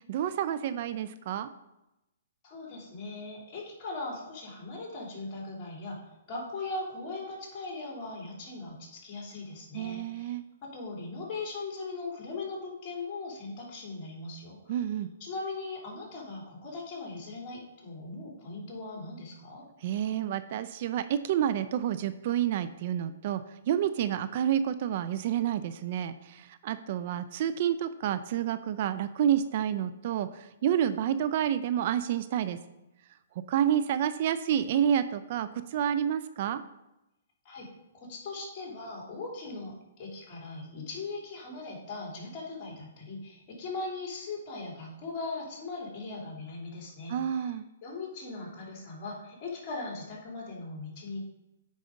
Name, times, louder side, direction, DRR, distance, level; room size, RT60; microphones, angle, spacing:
voice 1, 0.1-1.5 9.7-10.4 14.7-15.1 19.8-32.6 33.5-36.6 47.1-47.6, right 10 dB, 50° right, 12 dB, 0.4 m, -29 dB
voice 2, 2.4-10.3 10.6-14.8 15.2-19.6 37.4-37.7 38.0-47.5 47.8-51.2, left 3 dB, 35° left, -2 dB, 3.1 m, -39 dB
9.3 x 4.9 x 3.8 m, 0.92 s
hypercardioid pair, 130°, 0 cm